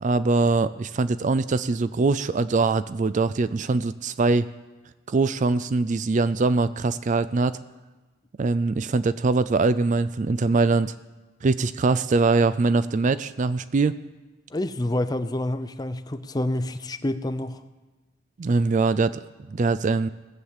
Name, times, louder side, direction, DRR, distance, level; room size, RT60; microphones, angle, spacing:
voice 1, 0.0-4.5 5.1-7.6 8.4-10.9 11.4-14.0 18.4-20.1, right 3 dB, 35° right, 15 dB, 0.4 m, -22 dB
voice 2, 14.5-17.6, left 1 dB, 20° left, 11 dB, 0.6 m, -28 dB
17.5 x 8.3 x 7.2 m, 1.2 s
head